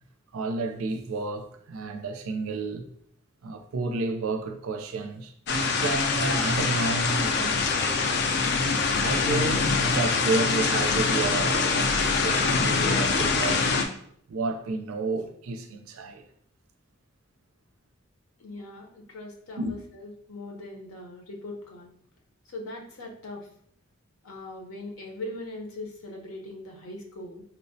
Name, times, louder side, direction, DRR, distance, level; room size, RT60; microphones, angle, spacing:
voice 1, 0.3-2.9 3.4-8.4 9.0-13.7 14.3-16.2 19.6-19.8, right 3 dB, 75° right, 0.4 m, -31 dB
sound 1, 5.5-13.8, left 4 dB, 50° left, 0.3 m, -24 dB
voice 2, 18.4-21.9 22.5-23.5 24.2-27.4, left 2 dB, 80° left, 0.7 m, -40 dB
4.4 x 2.1 x 2.6 m
head